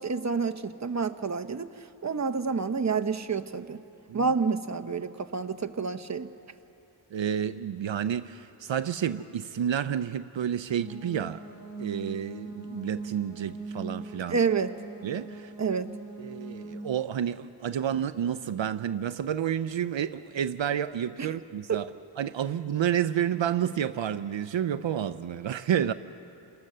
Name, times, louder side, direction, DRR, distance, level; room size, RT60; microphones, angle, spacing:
voice 1, 0.0-1.7 2.0-3.8 4.1-6.3 14.3-14.7 15.6-15.9 21.2-21.3 21.7-21.8, right 5 dB, 35° right, 0.9 m, -28 dB
voice 2, 7.1-11.4 11.8-14.4 15.0-15.5 16.2-21.9 22.2-25.9, right 9 dB, 75° right, 0.6 m, -30 dB
sound 1, 10.7-16.7, right 2 dB, 40° left, 6.9 m, -41 dB
28.5 x 20.0 x 6.7 m
wide cardioid pair, 70°, 45 cm